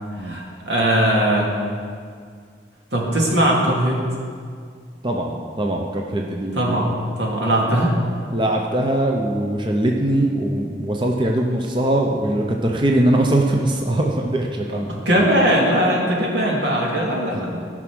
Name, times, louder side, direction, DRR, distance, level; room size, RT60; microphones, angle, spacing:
voice 1, 0.2-1.5 2.9-4.0 6.6-8.0 15.1-17.6, right 1 dB, 85° right, -2 dB, 2.4 m, -20 dB
voice 2, 5.0-6.8 7.6-7.9 8.3-15.0, right 1 dB, 25° right, 0 dB, 0.7 m, -21 dB
14.5 x 6.1 x 6.2 m, 2.1 s
head